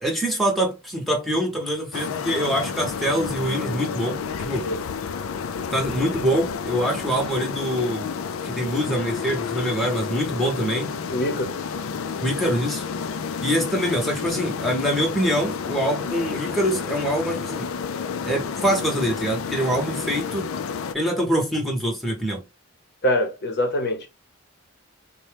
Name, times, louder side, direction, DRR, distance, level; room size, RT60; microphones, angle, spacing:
voice 1, 0.0-4.7 5.7-8.1 8.4-10.9 12.2-12.8 13.4-17.7 18.2-20.5 20.9-22.4, equal, ahead, 0.8 m, -24 dB
sound 1, 1.9-20.9, left 6 dB, 75° left, 0.4 m, -30 dB
voice 2, 11.1-11.6 23.0-24.1, left 1 dB, 50° left, 0.8 m, -24 dB
4.1 x 2.2 x 3.3 m
head